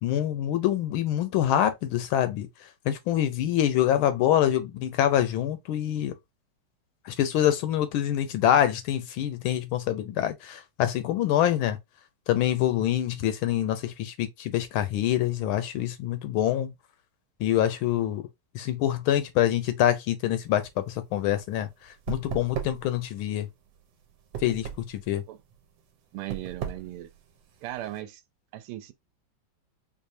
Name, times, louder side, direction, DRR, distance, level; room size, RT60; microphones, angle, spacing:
voice 1, 0.0-2.5 2.9-6.1 7.1-11.8 12.3-16.7 17.4-18.2 18.5-23.5 24.4-25.2, left 11 dB, 75° left, 1.3 m, -25 dB
sound 1, 20.5-28.0, right 8 dB, 70° right, 1.3 m, -39 dB
voice 2, 26.1-27.1 27.6-28.2 28.5-28.9, right 14 dB, 85° right, 1.5 m, -37 dB
4.7 x 2.5 x 2.6 m
omnidirectional pair, 2.4 m